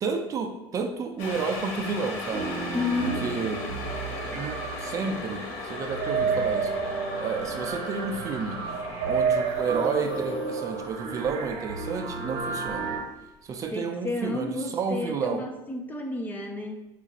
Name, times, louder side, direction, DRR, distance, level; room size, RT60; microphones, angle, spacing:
voice 1, 0.0-2.5 3.0-3.6 4.3-6.7 7.2-8.6 9.1-12.9 13.4-15.4, right 5 dB, 35° right, 5 dB, 0.5 m, -31 dB
sound 1, 1.2-13.3 13.6-13.7, left 3 dB, 85° left, 0.9 m, -39 dB
sound 2, 2.3-13.0, right 5 dB, 75° right, 0.7 m, -31 dB
voice 2, 2.7-3.3 13.7-16.9, left 2 dB, 20° left, 4 dB, 0.5 m, -31 dB
4.5 x 2.5 x 4.1 m, 0.95 s
cardioid pair, 120°, 9 cm